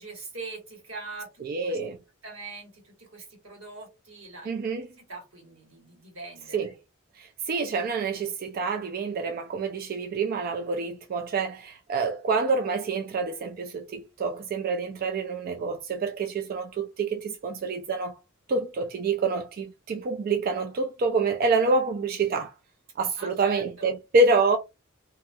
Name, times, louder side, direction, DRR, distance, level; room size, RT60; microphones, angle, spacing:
voice 1, 0.0-1.8 2.2-4.5 5.0-6.8 23.2-23.9, right 3 dB, 90° right, 1.7 m, -43 dB
voice 2, 1.4-2.0 4.5-4.9 6.5-6.7 7.2-18.2 18.5-22.5 23.0-24.6, right 3 dB, 45° right, 0.3 m, -27 dB
2.8 x 2.3 x 2.6 m
head